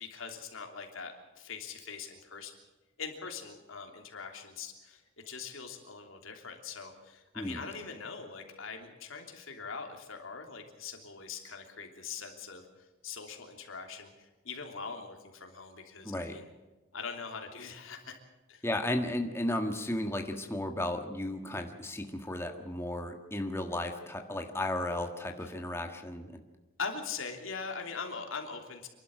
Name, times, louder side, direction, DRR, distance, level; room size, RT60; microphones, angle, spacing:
voice 1, 0.0-2.5 3.0-12.7 13.0-16.5 16.9-18.1 18.5-18.6 26.8-28.9, left 5 dB, 80° left, 3 dB, 3.2 m, -42 dB
voice 2, 16.0-16.4 18.6-26.3, left 1 dB, 10° left, 4 dB, 1.5 m, -34 dB
28.0 x 12.0 x 7.7 m, 1.1 s
head